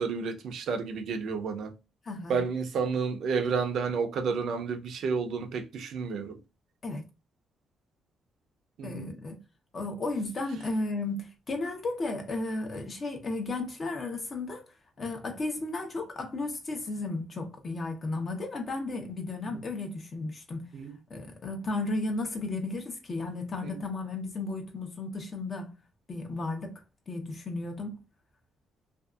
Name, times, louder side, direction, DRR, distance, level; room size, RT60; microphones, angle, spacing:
voice 1, 0.0-1.7 2.3-6.4 8.8-9.1 20.7-20.9 23.6-23.8, right 5 dB, 70° right, 0.5 m, -31 dB
voice 2, 2.0-2.4 6.8-7.0 8.8-9.4 9.7-14.6 15.0-20.7 21.1-25.7 26.1-26.8 27.1-28.0, left 2 dB, 40° left, 0.8 m, -34 dB
2.6 x 2.4 x 2.3 m
cardioid pair, 90°, 0 cm